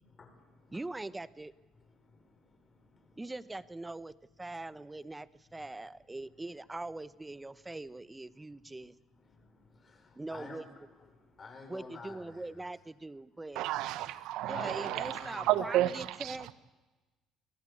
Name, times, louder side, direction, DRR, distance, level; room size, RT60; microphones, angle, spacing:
voice 1, 0.1-0.9 1.7-3.2 4.5-4.6 5.6-5.7 8.3-12.7 14.5-15.5, left 4 dB, 35° left, 6.1 m, -52 dB
voice 2, 0.7-1.5 3.2-8.9 10.2-10.6 11.7-13.7 14.5-16.5, right 2 dB, 15° right, 1.0 m, -42 dB
voice 3, 13.5-16.5, right 14 dB, 75° right, 1.4 m, -32 dB
28.0 x 18.5 x 8.5 m
supercardioid pair, 80°, 0 cm